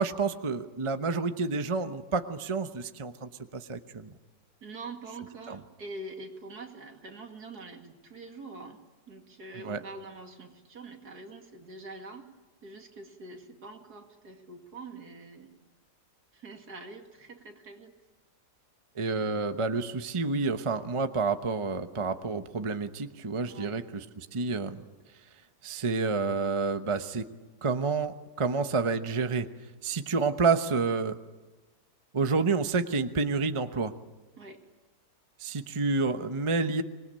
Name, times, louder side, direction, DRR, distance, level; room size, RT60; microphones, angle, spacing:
voice 1, 0.0-4.1 5.5-5.6 9.6-9.8 19.0-24.0 24.3-24.8 25.6-27.2 27.6-29.5 29.8-31.2 32.1-33.9 35.4-36.8, right 4 dB, 25° right, 8 dB, 0.8 m, -29 dB
voice 2, 4.6-8.8 9.1-12.3 12.6-15.5 16.3-18.0 23.5-23.8 34.4-34.7, right 3 dB, 70° right, 3 dB, 2.8 m, -45 dB
26.0 x 20.5 x 8.8 m, 1.2 s
omnidirectional pair, 1.8 m